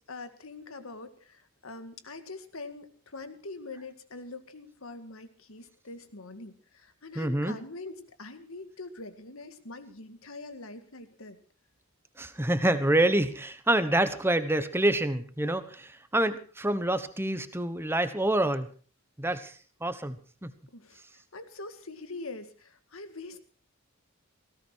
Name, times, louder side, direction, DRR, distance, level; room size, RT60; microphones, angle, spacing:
voice 1, 0.1-11.4 19.2-19.4 20.7-21.0 21.3-23.4, left 3 dB, 75° left, 9 dB, 1.9 m, -43 dB
voice 2, 7.1-7.6 12.2-18.7 19.2-19.5 19.8-20.1 20.4-20.5, right 1 dB, 10° right, 11 dB, 1.1 m, -27 dB
18.5 x 16.5 x 4.6 m, 0.40 s
head